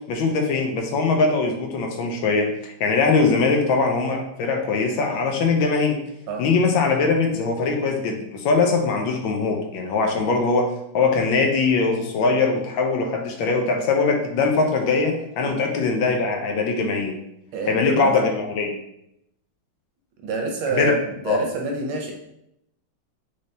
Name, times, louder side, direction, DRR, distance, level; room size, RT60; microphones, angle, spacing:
voice 1, 0.1-6.0 6.4-10.7 10.9-17.2 17.7-18.7 20.7-20.9 21.3-21.4, left 4 dB, 75° left, 2 dB, 1.3 m, -21 dB
voice 2, 17.5-18.1 20.2-21.0 21.2-22.1, right 3 dB, 80° right, 2 dB, 1.4 m, -27 dB
4.0 x 3.3 x 2.6 m, 0.81 s
omnidirectional pair, 2.3 m